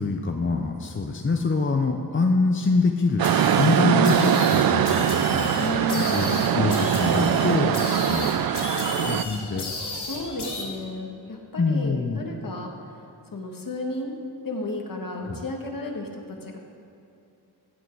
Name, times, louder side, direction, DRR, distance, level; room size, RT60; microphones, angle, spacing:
voice 1, 0.0-5.6 6.1-6.3 6.5-8.3 9.0-9.7 11.6-12.2 15.3-15.4, left 3 dB, 30° left, 4 dB, 0.6 m, -25 dB
sound 1, 3.2-10.6, left 3 dB, 80° left, 1.9 m, -34 dB
sound 2, 3.2-9.2, right 9 dB, 65° right, 0.5 m, -22 dB
voice 2, 5.6-6.4 10.0-12.7 13.3-14.2 14.4-16.6, left 2 dB, 55° left, 2 dB, 1.7 m, -33 dB
14.5 x 8.5 x 4.6 m, 2.7 s
wide cardioid pair, 85°, 39 cm